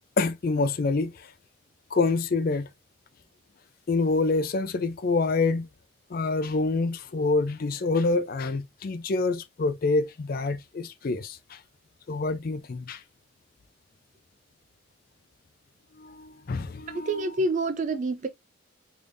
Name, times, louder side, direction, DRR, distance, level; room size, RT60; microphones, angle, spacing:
voice 1, 0.2-1.3 1.9-2.7 3.9-5.7 6.1-11.6 12.1-13.0 16.0-17.2, left 3 dB, 45° left, 0.4 m, -26 dB
voice 2, 16.9-18.3, right 2 dB, 40° right, 0.3 m, -27 dB
3.5 x 3.3 x 2.5 m
head